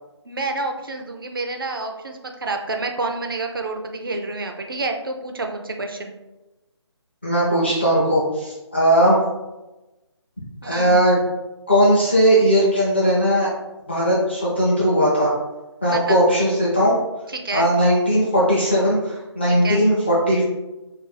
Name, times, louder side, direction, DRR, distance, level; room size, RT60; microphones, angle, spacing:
voice 1, 0.2-6.2 10.6-11.0 15.9-16.2 17.3-17.7 19.6-19.8, right 3 dB, 50° right, 3 dB, 0.4 m, -28 dB
voice 2, 7.2-9.2 10.6-11.1 11.7-13.5 13.9-15.3 15.8-16.9 17.5-20.4, equal, 25° left, -8 dB, 0.5 m, -18 dB
2.6 x 2.3 x 3.9 m, 1.1 s
hypercardioid pair, 180°, 15 cm